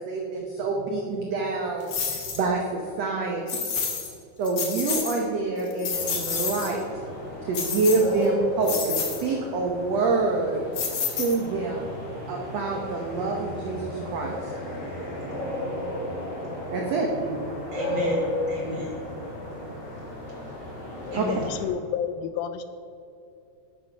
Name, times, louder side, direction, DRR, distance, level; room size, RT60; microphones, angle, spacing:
voice 1, 0.0-3.6 4.4-6.8 7.4-10.7 11.2-11.9 12.3-14.5 16.7-17.1 21.1-21.2, right 3 dB, 70° right, 1 dB, 1.5 m, -26 dB
sound 1, 1.9-2.4 3.5-4.1 4.4-5.2 5.6-6.7 7.5-8.2 8.6-9.2 10.7-11.6, left 6 dB, 50° left, 1.9 m, -29 dB
sound 2, 5.9-21.7, left 1 dB, 30° left, 3.4 m, -34 dB
voice 2, 12.0-12.3 14.7-15.5 17.2-17.4 17.7-19.0 21.1-21.5, equal, 35° right, -4 dB, 3.4 m, -37 dB
voice 3, 21.1-22.6, left 8 dB, 80° left, 10 dB, 2.3 m, -31 dB
11.5 x 8.5 x 5.9 m, 2.6 s
omnidirectional pair, 4.4 m